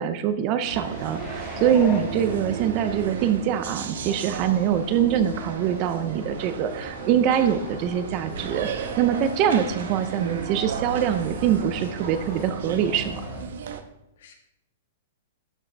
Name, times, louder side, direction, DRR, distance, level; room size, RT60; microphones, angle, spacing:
voice 1, 0.0-13.2, right 9 dB, 25° right, 11 dB, 0.5 m, -24 dB
sound 1, 0.6-13.4, left 1 dB, 30° left, 3.2 m, -40 dB
sound 2, 0.6-13.8, right 7 dB, 55° right, 0.8 m, -35 dB
sound 3, 1.1-3.1 3.6-3.7, left 2 dB, 10° left, 0.9 m, -37 dB
voice 2, 1.9-2.4 9.4-9.7 14.2-14.3, left 6 dB, 55° left, 3 dB, 1.7 m, -40 dB
12.0 x 6.5 x 3.3 m, 0.82 s
supercardioid pair, 180°, 0 cm